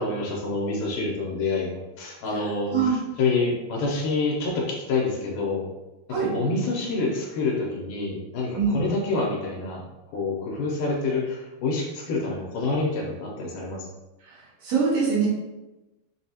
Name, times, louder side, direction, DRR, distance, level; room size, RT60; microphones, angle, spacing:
voice 1, 0.0-2.7 3.2-5.7 6.2-9.8 10.1-13.9, left 3 dB, 80° left, -2 dB, 2.3 m, -27 dB
voice 2, 2.3-3.0 6.1-6.3 8.5-8.8 14.2-15.3, right 5 dB, 60° right, -6 dB, 1.9 m, -25 dB
5.5 x 2.3 x 2.8 m, 1.0 s
omnidirectional pair, 3.7 m